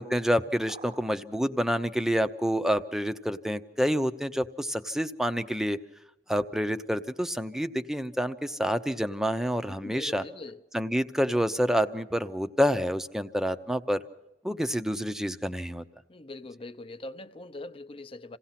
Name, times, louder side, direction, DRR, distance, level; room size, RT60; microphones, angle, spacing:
voice 1, 0.0-5.8 6.3-10.2 10.7-14.0 14.4-15.8, equal, 5° right, 0.6 m, -28 dB
sound 1, 0.7-1.3, right 4 dB, 40° right, 0.8 m, -47 dB
voice 2, 9.6-10.6 16.1-18.4, left 2 dB, 30° left, 0.6 m, -42 dB
27.5 x 17.0 x 5.8 m
head